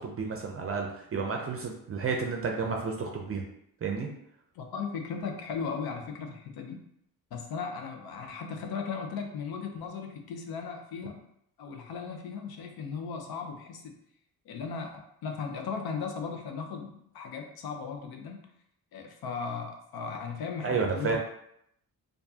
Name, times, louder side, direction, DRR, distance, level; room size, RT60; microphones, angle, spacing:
voice 1, 0.0-3.4 3.8-4.1 20.6-21.2, right 5 dB, 40° right, 1 dB, 0.5 m, -31 dB
voice 2, 4.5-6.8 7.3-11.2 11.6-13.9 14.5-18.5 18.9-21.2, left 5 dB, 75° left, 4 dB, 0.8 m, -37 dB
4.5 x 2.6 x 2.7 m, 0.75 s
cardioid pair, 135°, 37 cm